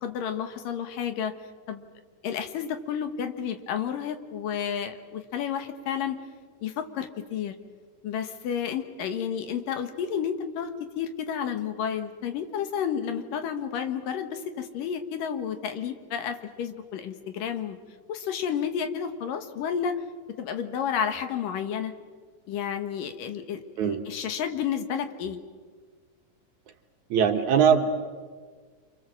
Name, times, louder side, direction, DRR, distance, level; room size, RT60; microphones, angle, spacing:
voice 1, 0.0-1.3 1.7-1.9 2.2-6.2 6.6-7.5 8.0-17.8 18.1-20.0 20.4-21.9 22.5-25.4, left 8 dB, 75° left, 8 dB, 3.1 m, -31 dB
voice 2, 27.1-27.9, right 7 dB, 65° right, 6 dB, 2.6 m, -21 dB
29.0 x 26.0 x 7.6 m, 1.5 s
omnidirectional pair, 4.0 m